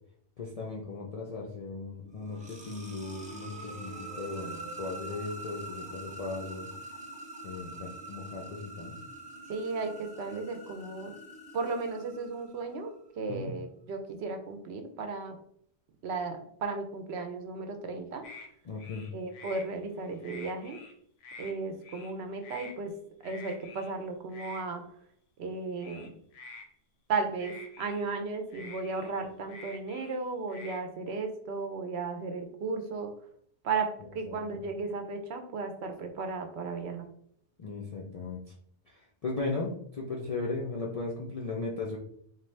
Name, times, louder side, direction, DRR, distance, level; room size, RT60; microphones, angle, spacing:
voice 1, 0.4-6.7 7.4-9.0 13.3-13.5 18.7-19.1 34.3-34.4 37.6-38.4 38.9-42.0, left 3 dB, 55° left, -3 dB, 0.4 m, -37 dB
sound 1, 2.0-12.8, right 2 dB, 10° right, 0.4 m, -45 dB
voice 2, 9.5-11.1 11.5-15.4 16.0-18.3 19.1-20.8 21.4-24.9 25.4-26.2 27.1-33.1 33.6-37.1, right 4 dB, 70° right, 6 dB, 0.8 m, -35 dB
sound 2, 18.2-18.5 18.8-19.7 20.0-20.9 21.2-21.5 21.8-22.1 22.4-22.7 23.2-23.9 24.3-24.6 25.8-26.7 27.4-28.0 28.5-30.2 30.5-30.8, left 3 dB, 90° left, 1.0 m, -47 dB
3.7 x 2.6 x 3.2 m, 0.67 s
omnidirectional pair, 1.2 m